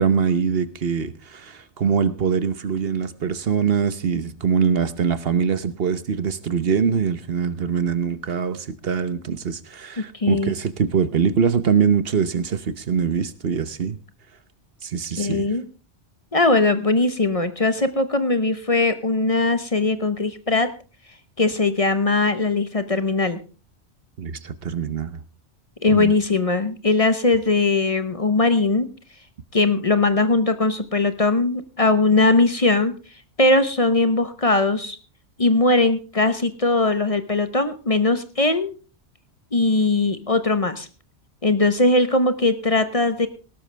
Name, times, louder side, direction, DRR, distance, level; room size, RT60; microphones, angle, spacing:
voice 1, 0.0-14.0 14.8-15.4 24.2-25.2 25.9-26.1, right 6 dB, 60° right, 14 dB, 1.1 m, -23 dB
voice 2, 10.1-10.5 15.2-15.7 16.3-20.7 21.4-23.4 25.8-28.9 29.5-32.9 33.4-35.0 35.4-38.7 39.5-40.9 41.4-43.3, left 2 dB, 35° left, 11 dB, 1.0 m, -20 dB
18.0 x 12.5 x 3.4 m, 0.34 s
omnidirectional pair, 1.1 m